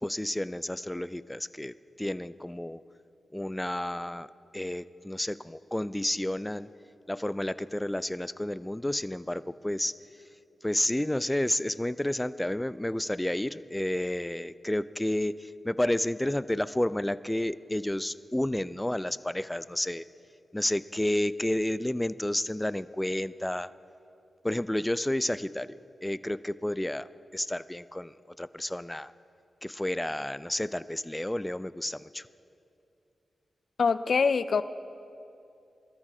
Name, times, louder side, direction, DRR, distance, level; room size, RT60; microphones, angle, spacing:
voice 1, 0.0-2.8 3.3-4.3 4.5-6.7 7.1-10.0 10.6-20.0 20.5-23.7 24.4-29.1 29.6-32.3, left 1 dB, 10° left, 16 dB, 0.4 m, -31 dB
voice 2, 33.8-34.6, left 5 dB, 65° left, 13 dB, 0.6 m, -24 dB
21.0 x 13.5 x 4.8 m, 2.7 s
cardioid pair, 60°, 0 cm